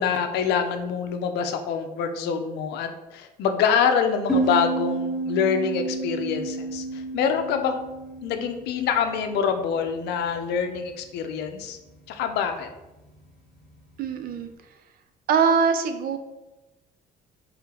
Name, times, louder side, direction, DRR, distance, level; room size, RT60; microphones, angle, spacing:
voice 1, 0.0-7.8 8.2-11.8 12.1-12.7, left 7 dB, 80° left, 7 dB, 0.5 m, -25 dB
sound 1, 4.3-9.6, right 2 dB, ahead, 1.4 m, -30 dB
voice 2, 14.0-14.5 15.3-16.2, right 6 dB, 60° right, 8 dB, 0.5 m, -22 dB
3.2 x 3.1 x 3.7 m, 1.0 s
cardioid pair, 110°, 17 cm